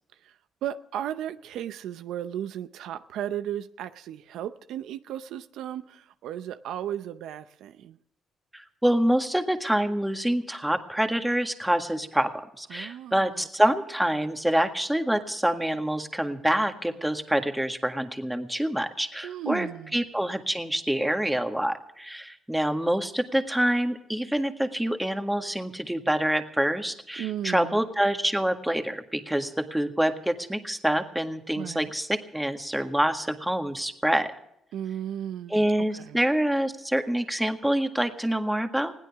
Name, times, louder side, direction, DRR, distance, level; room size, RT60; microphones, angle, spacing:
voice 1, 0.6-8.0 12.7-13.5 19.2-20.0 27.2-27.8 31.6-31.9 34.7-35.7 35.9-36.2, right 11 dB, 85° right, 11 dB, 0.6 m, -35 dB
voice 2, 8.5-12.3 12.6-19.7 19.9-34.3 35.5-38.9, right 1 dB, 5° right, 6 dB, 1.7 m, -26 dB
21.0 x 16.0 x 3.6 m, 0.77 s
cardioid pair, 90°, 0 cm